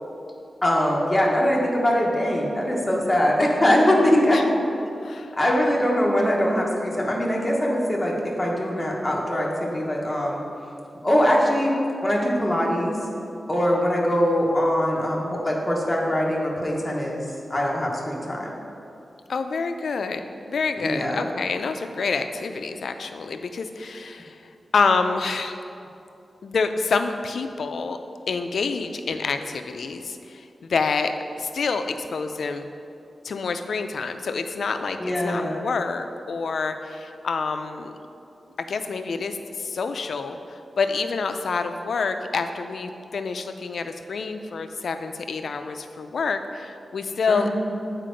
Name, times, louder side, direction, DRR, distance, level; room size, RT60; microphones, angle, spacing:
voice 1, 0.6-4.4 5.4-10.4 11.0-11.7 12.0-13.0 13.5-17.2 17.5-18.5 20.8-21.2 35.0-35.6 47.3-47.5, equal, 10° left, -3 dB, 1.0 m, -22 dB
voice 2, 5.0-5.4 19.3-24.4 24.7-25.6 26.4-28.0 28.3-32.7 33.2-38.0 38.6-47.5, left 4 dB, 75° left, 8 dB, 0.4 m, -27 dB
7.6 x 4.5 x 5.1 m, 2.7 s
wide cardioid pair, 155°, 0 cm